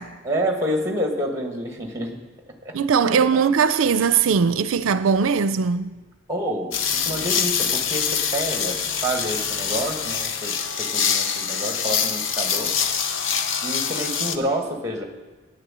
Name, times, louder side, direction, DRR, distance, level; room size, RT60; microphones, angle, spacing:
voice 1, 0.2-2.2 2.6-2.8 3.0-3.4 6.3-12.7 13.6-15.0, right 1 dB, 15° right, 1.5 m, -28 dB
voice 2, 2.7-5.9, right 6 dB, 85° right, 0.4 m, -20 dB
sound 1, 6.7-14.4, left 7 dB, 70° left, 0.7 m, -25 dB
9.7 x 9.1 x 7.5 m
head